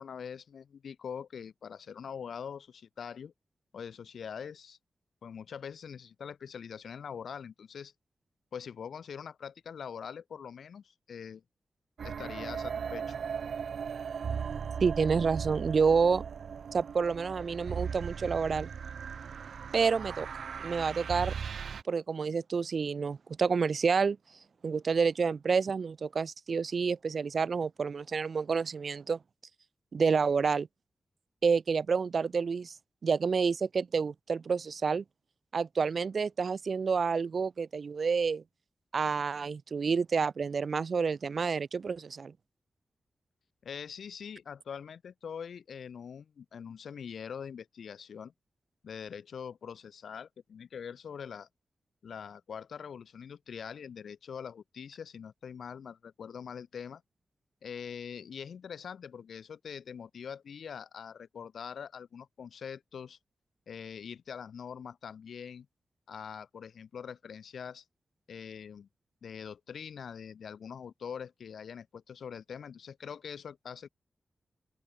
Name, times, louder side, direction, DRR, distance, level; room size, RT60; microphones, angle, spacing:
voice 1, 0.0-3.3 3.7-4.8 5.2-7.9 8.5-11.4 12.0-13.2 43.6-48.3 48.8-51.5 52.0-57.0 57.6-63.2 63.7-65.7 66.1-67.8 68.3-68.9 69.2-73.9, left 7 dB, 85° left, 7.7 m, -43 dB
sound 1, 12.0-21.8, right 6 dB, 80° right, 2.1 m, -38 dB
voice 2, 14.8-16.2 16.7-18.7 19.7-20.3 20.6-21.3 21.9-24.2 24.6-29.2 29.9-30.7 31.4-32.7 33.0-35.0 35.5-38.4 38.9-42.3, right 5 dB, 65° right, 0.8 m, -29 dB
open air
cardioid pair, 70°, 0 cm